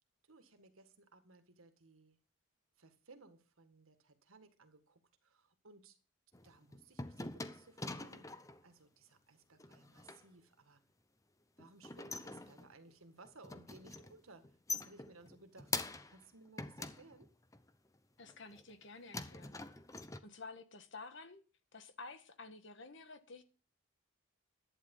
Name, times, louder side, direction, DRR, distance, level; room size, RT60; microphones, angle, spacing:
voice 1, 0.3-2.2 2.8-6.0 6.4-8.3 8.6-10.8 11.6-15.7 16.1-17.3, right 3 dB, 75° right, 1.9 m, -61 dB
sound 1, 6.3-8.6 9.6-10.2 11.6-12.9 13.2-14.2 14.4-16.2 16.6-17.7 18.2-18.8 19.1-20.2, left 3 dB, 15° left, 0.7 m, -44 dB
voice 2, 18.2-19.6 20.2-21.4 21.7-23.4, left 3 dB, 55° left, 1.5 m, -51 dB
11.5 x 9.6 x 5.5 m
head